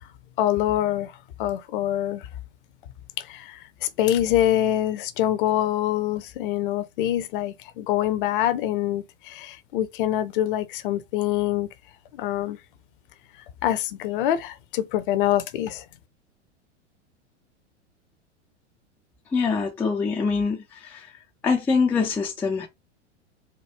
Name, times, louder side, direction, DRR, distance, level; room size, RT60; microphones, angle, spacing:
voice 1, 0.4-2.3 3.2-11.7 12.1-12.6 13.6-15.8, left 12 dB, 50° left, 0.6 m, -25 dB
voice 2, 19.3-21.0 21.4-22.7, left 5 dB, 5° left, 0.3 m, -24 dB
4.3 x 2.2 x 3.3 m
figure-of-eight pair, 90°, 35 cm